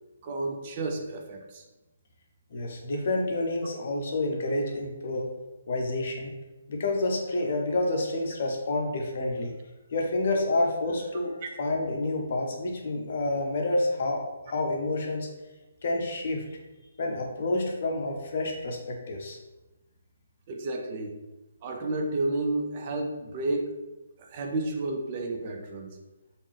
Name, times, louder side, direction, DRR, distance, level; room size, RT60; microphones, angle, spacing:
voice 1, 0.2-1.6 11.4-11.5 20.5-21.2 21.6-23.8 24.2-26.0, right 2 dB, 35° right, 2 dB, 0.4 m, -31 dB
voice 2, 2.5-5.3 5.7-6.3 6.7-9.5 9.9-15.3 15.8-16.4 17.0-19.4, left 2 dB, 45° left, 1 dB, 0.6 m, -29 dB
3.4 x 2.5 x 3.3 m, 1.1 s
figure-of-eight pair, 135°, 0 cm